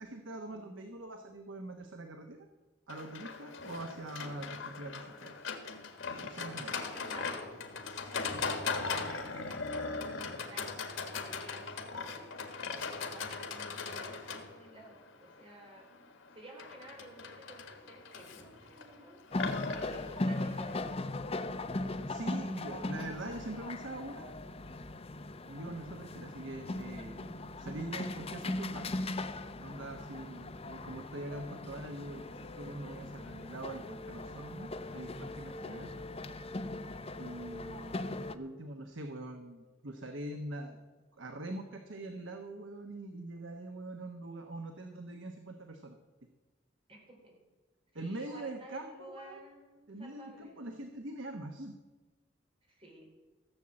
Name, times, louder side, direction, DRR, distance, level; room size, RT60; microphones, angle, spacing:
voice 1, 0.0-2.4 2.9-5.3 6.1-6.8 22.0-24.3 25.5-28.9 29.6-35.9 37.2-40.8 41.1-46.0 47.9-49.4 49.9-51.7, right 2 dB, 75° right, 5 dB, 1.1 m, -43 dB
Livestock farm animals working animals, 2.9-20.9, left 4 dB, 90° left, 1.7 m, -40 dB
voice 2, 6.7-7.5 7.9-10.8 11.1-11.7 11.9-15.9 16.3-19.2 19.7-20.9 27.5-27.8 30.0-30.4 35.6-36.0 46.9-47.3 47.9-50.6 52.7-53.1, right 1 dB, 30° right, 0 dB, 4.1 m, -53 dB
sound 1, 19.3-38.4, left 2 dB, 30° left, 0.7 m, -39 dB
15.0 x 7.3 x 7.6 m, 1.3 s
head